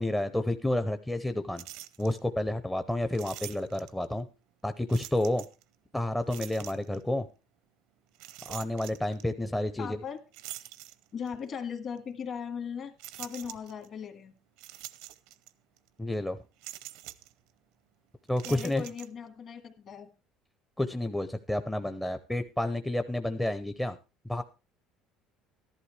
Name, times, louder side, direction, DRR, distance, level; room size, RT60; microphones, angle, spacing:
voice 1, 0.0-1.6 2.0-4.3 4.6-5.4 5.9-7.3 8.5-10.0 16.0-16.4 18.3-18.8 20.8-24.0 24.2-24.4, left 1 dB, 5° left, 9 dB, 0.6 m, -30 dB
sound 1, 1.6-2.2 3.1-4.1 4.9-5.6 6.3-7.0 8.1-9.2 10.3-11.4 12.0-12.1 13.0-13.9 14.6-15.5 15.8-15.9 16.6-17.3 18.3-19.1, right 15 dB, 80° right, 0.7 m, -45 dB
voice 2, 9.8-10.2 11.1-14.3 18.5-20.1, left 7 dB, 45° left, 7 dB, 1.8 m, -38 dB
13.5 x 11.5 x 3.3 m, 0.31 s
cardioid pair, 120°, 0 cm